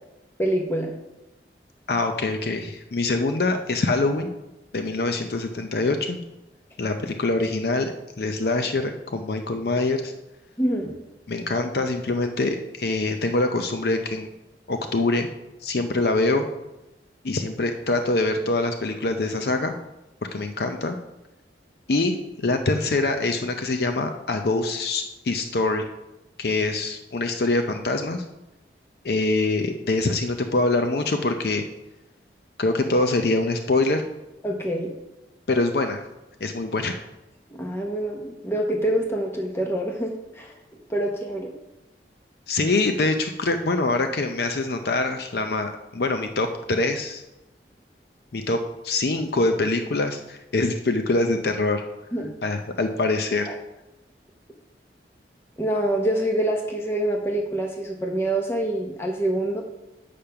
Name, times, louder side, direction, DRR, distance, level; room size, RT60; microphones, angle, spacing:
voice 1, 0.4-0.9 10.6-11.0 34.4-34.9 37.5-40.5 40.9-41.5 52.1-52.3 53.5-53.6 55.6-59.6, right 1 dB, 15° left, 1 dB, 0.8 m, -26 dB
voice 2, 1.9-4.3 4.7-6.2 6.8-10.1 11.3-14.3 14.7-15.3 15.6-16.4 17.2-19.7 20.3-21.0 21.9-25.9 26.4-28.2 29.0-31.6 32.6-34.0 35.5-36.0 36.4-36.9 42.5-47.2 48.3-51.8 52.4-53.6, left 2 dB, 60° left, 6 dB, 0.6 m, -24 dB
8.6 x 5.1 x 5.7 m, 0.97 s
head